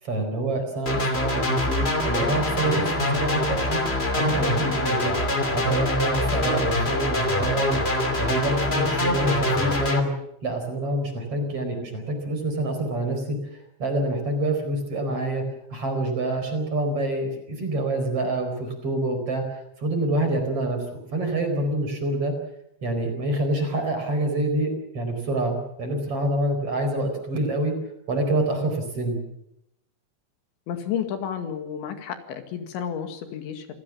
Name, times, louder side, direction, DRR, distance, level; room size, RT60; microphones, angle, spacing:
voice 1, 0.0-3.8 4.2-5.2 5.5-7.8 8.2-10.1 10.4-13.4 13.8-15.4 15.7-19.4 19.8-22.3 22.8-27.7 28.1-29.2, right 1 dB, 35° right, 5 dB, 5.1 m, -26 dB
sound 1, 0.9-10.0, left 1 dB, 20° left, 1.8 m, -24 dB
voice 2, 30.7-33.7, left 8 dB, 85° left, 7 dB, 4.5 m, -31 dB
27.5 x 17.5 x 7.4 m, 0.79 s
omnidirectional pair, 5.1 m